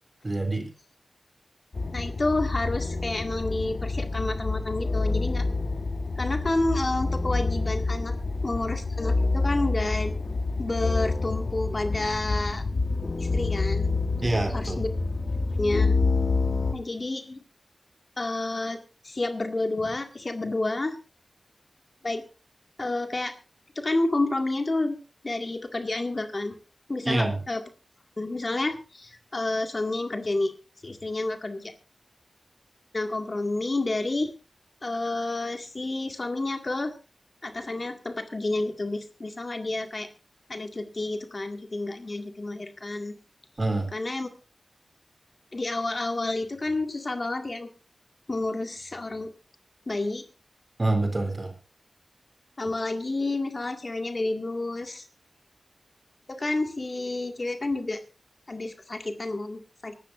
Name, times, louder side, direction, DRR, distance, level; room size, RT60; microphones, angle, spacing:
voice 1, 0.2-0.7 14.2-14.8 27.0-27.4 43.6-43.9 50.8-51.5, right 2 dB, 40° right, 6 dB, 3.3 m, -26 dB
sound 1, 1.7-16.7, left 3 dB, 65° left, 1.4 m, -27 dB
voice 2, 1.9-5.4 6.2-8.2 8.4-10.1 10.6-12.6 13.2-14.0 14.5-14.9 15.6-15.9 16.7-17.4 18.2-18.8 19.0-21.0 22.0-22.2 22.8-23.3 23.8-25.0 25.2-26.6 26.9-27.6 28.2-30.5 30.8-31.7 32.9-34.3 34.8-36.9 37.4-40.1 40.5-43.2 43.9-44.3 45.5-47.7 48.3-49.3 49.9-50.2 52.6-55.1 56.3-58.0 58.5-60.0, left 2 dB, 45° left, 5 dB, 2.0 m, -30 dB
24.5 x 12.5 x 2.6 m, 0.34 s
wide cardioid pair, 60°, 0 cm